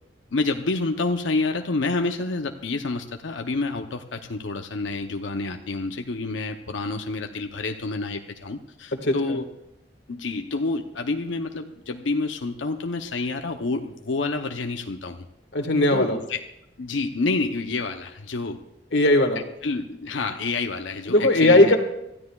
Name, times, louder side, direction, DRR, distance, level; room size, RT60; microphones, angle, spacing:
voice 1, 0.3-9.5 10.1-15.2 15.9-16.4 16.8-18.6 19.6-21.8, left 3 dB, 90° left, 5 dB, 0.7 m, -28 dB
voice 2, 9.0-9.4 15.5-16.2 18.9-19.4 21.1-21.8, left 1 dB, 65° left, 5 dB, 1.6 m, -18 dB
25.5 x 14.0 x 2.4 m, 0.87 s
head